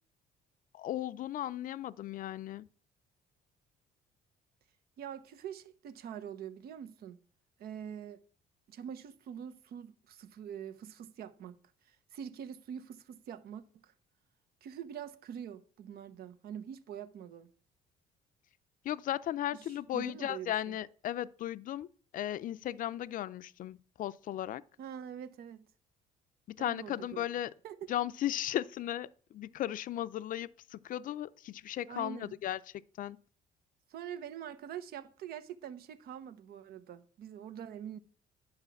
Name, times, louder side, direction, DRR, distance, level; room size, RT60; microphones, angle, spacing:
voice 1, 0.7-2.7 18.8-21.9 22.1-24.6 26.5-27.5 27.9-32.6 33.0-33.2, left 12 dB, 55° left, 0.5 m, -36 dB
voice 2, 5.0-7.2 7.6-8.2 8.7-13.9 14.6-17.5 19.5-20.8 24.8-25.7 26.6-27.3 27.6-27.9 31.9-32.3 33.9-38.0, right 9 dB, 65° right, 1.0 m, -45 dB
10.5 x 4.9 x 7.0 m
cardioid pair, 110°, 17 cm